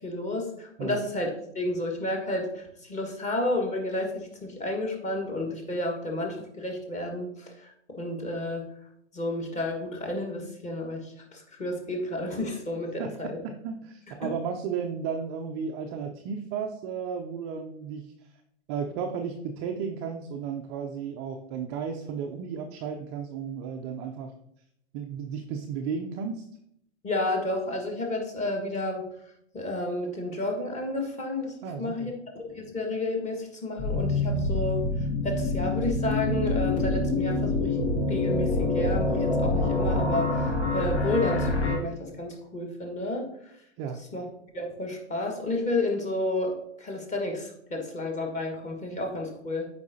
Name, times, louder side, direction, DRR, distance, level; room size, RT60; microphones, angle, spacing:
voice 1, 0.0-8.7 9.1-13.4 14.2-14.3 27.0-29.0 29.5-34.8 35.2-43.3 44.1-44.2 44.5-49.7, left 2 dB, 20° left, 1 dB, 1.4 m, -31 dB
voice 2, 13.4-18.1 18.7-24.3 24.9-26.5 31.6-32.1 43.8-44.0, right 6 dB, 25° right, 3 dB, 0.3 m, -34 dB
sound 1, 33.8-41.8, left 2 dB, 65° left, 1.9 m, -26 dB
8.1 x 4.6 x 2.7 m, 0.76 s
hypercardioid pair, 115°, 36 cm